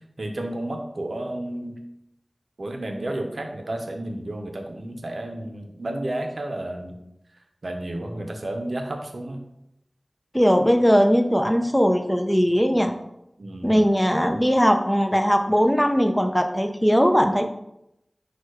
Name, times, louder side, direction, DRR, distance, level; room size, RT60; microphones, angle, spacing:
voice 1, 0.2-1.8 2.6-7.0 7.6-9.4 13.4-13.8, right 1 dB, 80° right, 4 dB, 0.6 m, -31 dB
voice 2, 10.3-12.9 13.6-17.5, equal, 10° left, 6 dB, 0.5 m, -19 dB
4.5 x 2.3 x 4.6 m, 0.84 s
wide cardioid pair, 50°, 0 cm